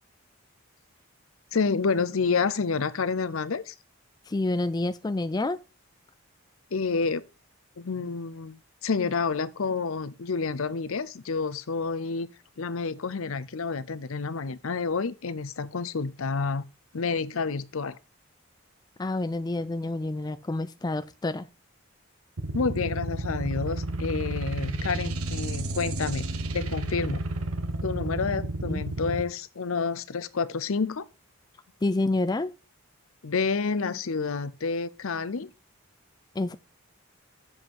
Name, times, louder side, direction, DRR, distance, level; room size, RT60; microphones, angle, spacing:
voice 1, 1.5-3.7 6.7-7.2 7.8-12.3 12.6-16.6 16.9-18.0 22.5-26.3 26.5-27.2 27.8-31.1 33.2-35.5, left 4 dB, 75° left, 0.6 m, -29 dB
voice 2, 4.3-5.6 19.0-21.5 28.7-28.8 31.8-32.5 36.4-36.6, left 2 dB, 20° left, 0.4 m, -28 dB
sound 1, 22.4-29.2, right 1 dB, 85° right, 1.1 m, -31 dB
7.2 x 5.5 x 5.4 m
head